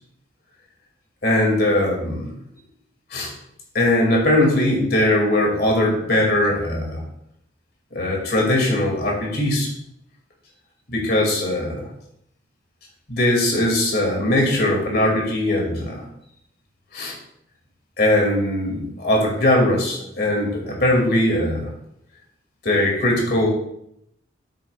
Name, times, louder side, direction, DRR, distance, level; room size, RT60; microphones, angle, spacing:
voice 1, 1.2-2.3 3.1-3.3 3.7-7.0 7.9-9.7 10.9-11.9 13.1-16.1 16.9-17.1 18.0-21.7 22.6-23.5, left 1 dB, 55° left, -1 dB, 2.3 m, -20 dB
9.2 x 8.4 x 2.3 m, 0.74 s
head